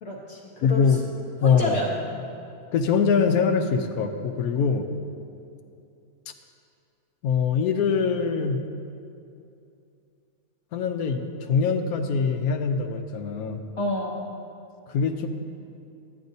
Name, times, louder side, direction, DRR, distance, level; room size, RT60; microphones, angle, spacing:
voice 1, 0.0-1.0 1.4-2.0 13.8-14.3, left 1 dB, 55° left, -4 dB, 1.1 m, -29 dB
voice 2, 0.6-1.0 1.4-1.8 2.7-4.9 7.2-8.6 10.7-13.6 14.9-15.3, left 6 dB, 85° left, 7 dB, 1.1 m, -23 dB
13.0 x 10.0 x 2.7 m, 2.6 s
omnidirectional pair, 1.5 m